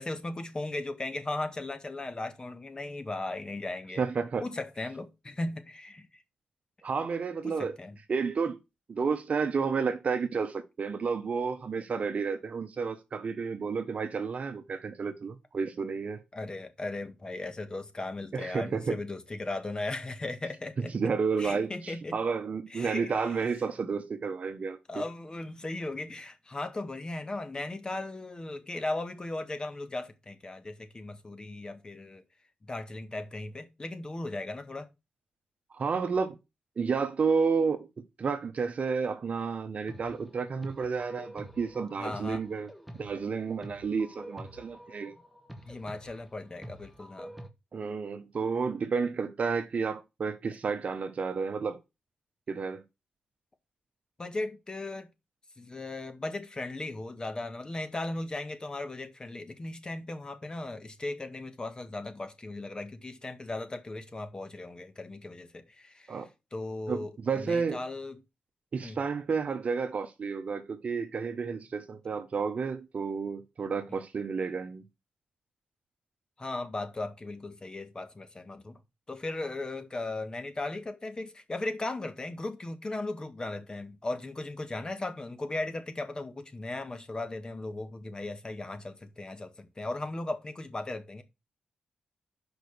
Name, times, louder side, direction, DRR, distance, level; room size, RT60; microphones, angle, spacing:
voice 1, 0.0-4.0 4.4-6.2 7.4-8.0 16.3-22.2 22.7-23.5 24.9-32.2 32.6-34.9 42.0-42.4 45.6-47.4 54.2-55.1 55.6-68.2 68.8-69.0 73.9-74.0 76.4-78.8 79.1-91.2, left 2 dB, 30° left, 1.7 m, -37 dB
voice 2, 4.0-4.4 6.8-7.8 8.1-8.6 8.9-16.2 18.3-19.0 20.9-24.8 35.7-36.3 36.8-37.9 38.2-42.7 42.9-45.1 47.7-51.8 52.5-52.8 66.1-66.3 66.9-67.8 68.7-74.8, right 5 dB, 55° right, 1.0 m, -31 dB
sound 1, 39.9-47.5, equal, ahead, 1.6 m, -47 dB
6.5 x 5.2 x 6.6 m
cardioid pair, 80°, 3 cm